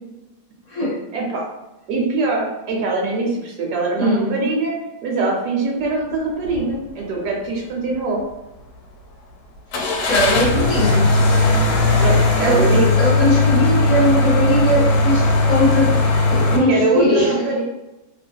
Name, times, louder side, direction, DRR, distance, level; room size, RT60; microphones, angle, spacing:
voice 1, 1.1-1.4 1.9-4.7 5.0-8.2 12.0-12.9 16.7-17.6, right 3 dB, 90° right, -1 dB, 1.2 m, -22 dB
voice 2, 4.0-4.3 10.1-11.1 12.4-17.4, equal, 50° left, -7 dB, 1.0 m, -20 dB
sound 1, 6.5-6.7 7.1-7.2 9.7-16.6, left 2 dB, 80° left, 1.1 m, -17 dB
2.7 x 2.5 x 2.2 m, 0.99 s
omnidirectional pair, 1.7 m